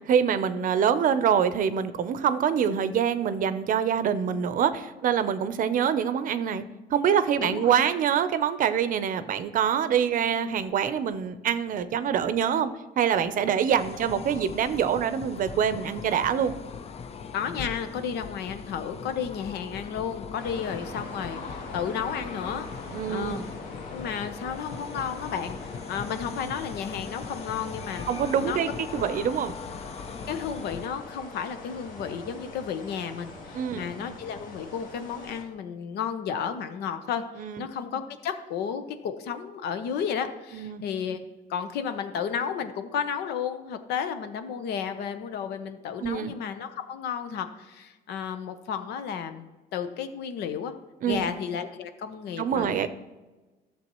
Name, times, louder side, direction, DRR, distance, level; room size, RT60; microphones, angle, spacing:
voice 1, 0.1-6.6 6.9-16.5 22.9-23.5 28.1-29.6 33.5-33.9 37.4-37.7 40.5-40.8 46.0-46.3 51.0-51.3 52.4-52.9, right 8 dB, 55° right, 12 dB, 0.6 m, -25 dB
voice 2, 7.4-7.7 17.3-22.7 23.1-23.5 23.9-28.6 30.3-41.2 41.5-50.7 51.0-52.7, left 7 dB, 75° left, 9 dB, 0.9 m, -33 dB
sound 1, 13.8-30.9, left 5 dB, 40° left, 0.6 m, -40 dB
sound 2, 20.4-35.4, left 2 dB, 55° left, 1.7 m, -43 dB
12.5 x 7.0 x 3.1 m, 1.2 s
cardioid pair, 110°, 17 cm